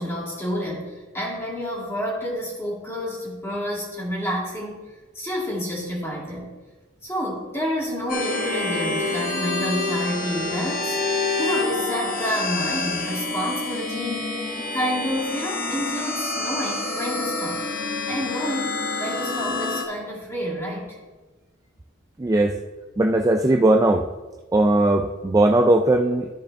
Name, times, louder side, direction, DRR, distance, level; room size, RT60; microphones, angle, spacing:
voice 1, 0.0-4.7 5.1-6.5 7.0-11.0 11.4-17.6 18.1-21.0, equal, 15° left, -5 dB, 2.2 m, -29 dB
Bowed string instrument, 8.1-11.8, left 3 dB, 70° left, 1.2 m, -28 dB
sound 1, 8.1-19.8, left 2 dB, 45° left, 1.1 m, -28 dB
voice 2, 22.2-22.6 23.0-24.0 24.5-26.3, right 2 dB, 15° right, 2 dB, 0.3 m, -18 dB
14.0 x 5.0 x 3.4 m, 1.3 s
head